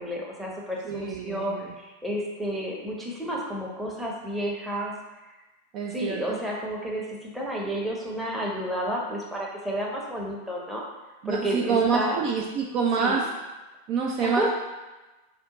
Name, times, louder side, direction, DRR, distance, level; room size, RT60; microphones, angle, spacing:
voice 1, 0.0-4.9 5.2-5.3 5.9-10.8 11.2-12.2 13.0-13.2 14.2-14.5, equal, 5° right, -3 dB, 0.8 m, -31 dB
voice 2, 0.9-1.6 5.7-6.4 11.2-13.2 13.9-14.5, right 5 dB, 40° right, 0 dB, 0.4 m, -26 dB
4.3 x 2.4 x 3.7 m, 1.1 s
figure-of-eight pair, 90°, 0 cm